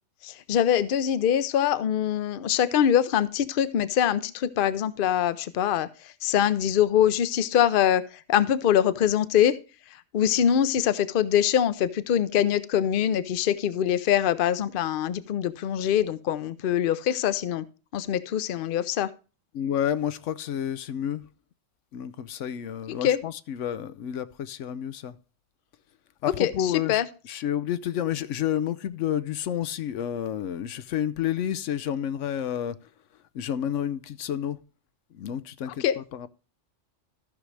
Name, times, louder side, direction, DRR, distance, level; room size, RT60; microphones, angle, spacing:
voice 1, 0.2-9.6 10.1-17.6 17.9-19.1 23.0-23.2 26.4-27.0 35.7-36.0, left 10 dB, 55° left, 0.7 m, -24 dB
voice 2, 19.5-21.3 21.9-25.2 26.2-32.8 33.3-34.6 35.1-36.3, left 10 dB, 85° left, 1.0 m, -30 dB
14.0 x 6.3 x 3.2 m
omnidirectional pair, 1.2 m